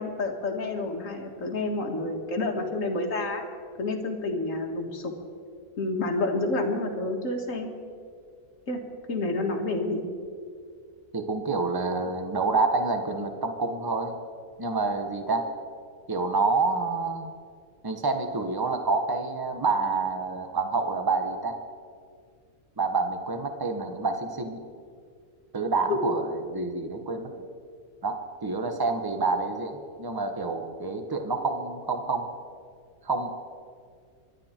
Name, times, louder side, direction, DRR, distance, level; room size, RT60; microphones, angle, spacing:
voice 1, 0.0-3.4 3.8-5.1 5.8-7.7 8.7-8.8 9.1-10.0 26.0-26.1, left 2 dB, 60° left, 2 dB, 2.1 m, -29 dB
voice 2, 11.1-14.2 14.6-15.4 16.1-17.3 17.8-21.6 22.8-24.6 25.5-27.3 28.0-32.3 33.0-33.4, right 3 dB, 15° right, 6 dB, 1.1 m, -28 dB
26.0 x 11.0 x 4.5 m, 2.1 s
omnidirectional pair, 1.5 m